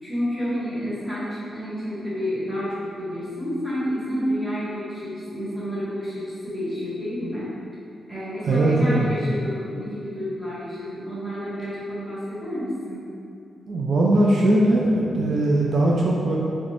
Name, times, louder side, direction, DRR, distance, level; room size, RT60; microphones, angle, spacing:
voice 1, 0.0-7.5 8.1-13.0, equal, 10° right, -11 dB, 1.4 m, -29 dB
voice 2, 8.4-9.1 13.7-16.4, right 1 dB, 65° right, -3 dB, 0.3 m, -20 dB
3.3 x 3.1 x 2.5 m, 2.6 s
cardioid pair, 75°, 0 cm